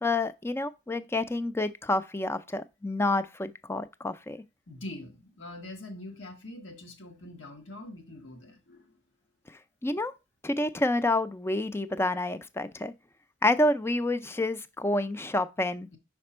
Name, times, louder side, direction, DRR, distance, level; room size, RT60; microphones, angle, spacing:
voice 1, 0.0-4.4 9.8-10.1 10.4-12.9 13.4-15.9, left 2 dB, 15° left, 0.4 m, -28 dB
voice 2, 4.7-8.9, left 1 dB, 90° left, 1.4 m, -43 dB
5.9 x 4.4 x 4.2 m
head